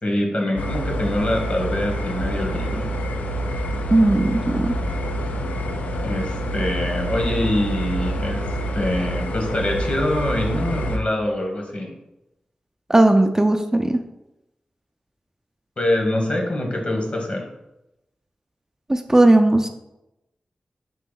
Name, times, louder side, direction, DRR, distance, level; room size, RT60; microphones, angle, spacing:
voice 1, 0.0-2.9 6.0-8.4 8.7-11.9 15.8-17.5, left 1 dB, 50° left, 1 dB, 1.2 m, -24 dB
sound 1, 0.6-11.0, equal, 80° left, 0.4 m, -27 dB
voice 2, 3.9-4.7 12.9-14.0 18.9-19.7, right 1 dB, 20° right, 6 dB, 0.4 m, -17 dB
3.8 x 3.0 x 3.8 m, 0.91 s
cardioid pair, 45°, 3 cm